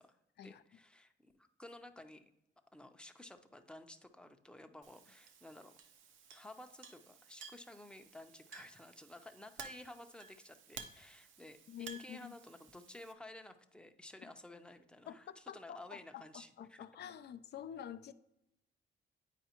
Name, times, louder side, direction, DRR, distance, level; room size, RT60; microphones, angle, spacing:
voice 1, 0.0-2.3 2.7-5.7 6.3-16.8, left 1 dB, 5° left, 0.6 m, -54 dB
Chink clink, 4.8-13.1, right 6 dB, 80° right, 0.7 m, -55 dB
voice 2, 11.7-12.3 15.1-18.1, left 9 dB, 60° left, 0.4 m, -48 dB
9.1 x 4.7 x 2.9 m
cardioid pair, 90°, 20 cm